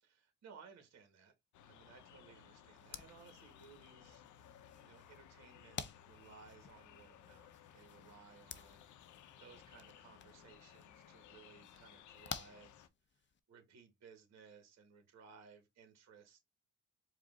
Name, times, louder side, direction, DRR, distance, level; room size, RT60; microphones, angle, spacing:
voice 1, 0.0-1.3 1.7-4.2 4.5-8.9 9.4-16.4, right 6 dB, 60° right, 1.5 m, -61 dB
sound 1, 1.5-12.9, left 9 dB, 75° left, 0.7 m, -60 dB
sound 2, 2.8-13.4, left 7 dB, 40° left, 0.6 m, -53 dB
4.9 x 2.6 x 3.7 m
cardioid pair, 90°, 30 cm